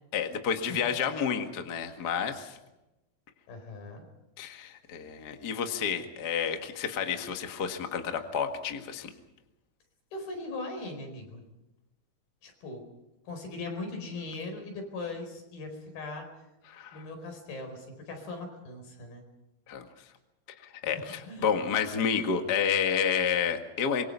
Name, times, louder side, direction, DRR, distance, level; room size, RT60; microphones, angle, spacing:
voice 1, 0.1-2.6 4.4-9.1 16.7-17.0 19.7-19.9 20.6-24.0, left 7 dB, 40° left, 5 dB, 1.5 m, -30 dB
voice 2, 3.5-4.0 10.1-11.4 12.4-12.8 13.2-16.3 16.9-19.2 20.9-21.5, left 2 dB, 75° left, 4 dB, 6.6 m, -39 dB
25.5 x 23.0 x 5.6 m, 0.98 s
omnidirectional pair, 4.3 m